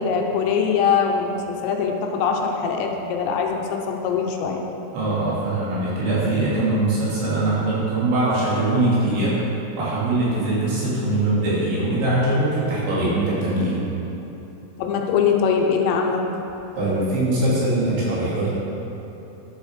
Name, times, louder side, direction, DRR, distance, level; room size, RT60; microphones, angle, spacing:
voice 1, 0.0-4.6 14.8-16.2, left 6 dB, 80° left, 1 dB, 3.0 m, -22 dB
voice 2, 4.9-9.4 9.8-13.8 16.8-18.5, right 2 dB, 80° right, -9 dB, 5.6 m, -22 dB
11.5 x 7.8 x 6.7 m, 3.0 s
omnidirectional pair, 5.2 m